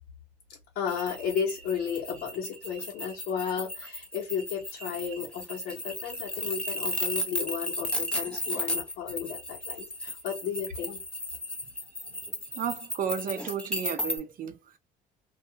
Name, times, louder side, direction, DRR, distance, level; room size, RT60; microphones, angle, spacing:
voice 1, 0.7-11.0, left 7 dB, 70° left, 0.9 m, -33 dB
sound 1, 0.9-14.2, left 1 dB, 5° left, 0.7 m, -35 dB
voice 2, 12.6-14.6, right 7 dB, 55° right, 0.7 m, -32 dB
2.3 x 2.3 x 2.8 m
cardioid pair, 110°, 17 cm